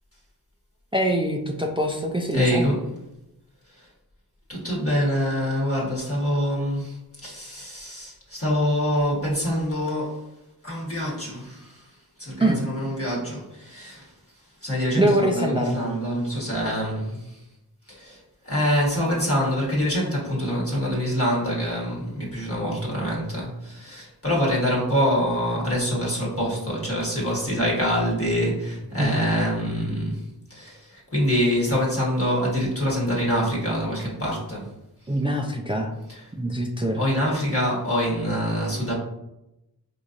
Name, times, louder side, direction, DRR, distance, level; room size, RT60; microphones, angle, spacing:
voice 1, 0.9-2.6 12.4-12.6 15.0-15.7 29.0-29.1 35.1-35.9 36.4-37.0, right 1 dB, 15° right, 1 dB, 0.4 m, -23 dB
voice 2, 2.3-2.8 3.7-3.9 4.5-10.3 10.6-14.1 14.6-17.4 17.9-30.2 30.5-34.7 36.1-36.2 37.0-38.9, equal, 35° left, -5 dB, 1.2 m, -25 dB
4.5 x 2.6 x 2.4 m, 0.88 s
wide cardioid pair, 50°, 39 cm